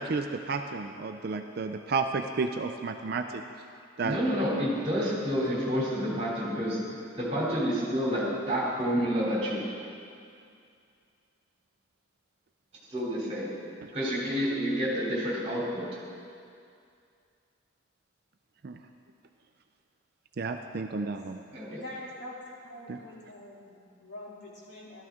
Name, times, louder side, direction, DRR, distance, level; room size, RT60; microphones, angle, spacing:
voice 1, 0.0-3.2 4.0-4.2 18.6-18.8 20.4-21.4 22.9-23.0, right 4 dB, 50° right, 6 dB, 0.4 m, -31 dB
voice 2, 4.0-6.8 7.2-9.6 12.9-13.5 13.9-15.9 21.5-21.8, equal, 30° right, -5 dB, 2.9 m, -29 dB
voice 3, 21.8-25.0, left 1 dB, 55° left, -6 dB, 2.8 m, -45 dB
14.0 x 13.0 x 3.6 m, 2.4 s
head